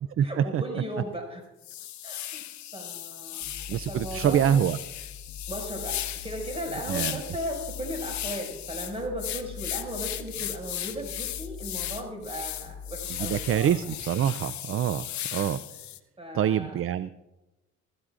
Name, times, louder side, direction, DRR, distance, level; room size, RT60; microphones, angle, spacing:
voice 1, 0.2-1.4 2.0-2.4 2.7-3.4 3.9-4.6 5.5-13.7 16.2-16.8, equal, 20° right, 0 dB, 5.7 m, -36 dB
sound 1, 1.0-1.2 1.6-16.0, left 13 dB, 70° left, 0.7 m, -36 dB
sound 2, 3.4-13.6, left 4 dB, 35° left, 1.6 m, -43 dB
voice 2, 3.7-4.8 6.9-7.1 13.2-15.1 15.3-15.6 16.3-17.1, right 10 dB, 45° right, 15 dB, 0.4 m, -25 dB
23.5 x 13.5 x 2.5 m, 1.0 s
cardioid pair, 90°, 30 cm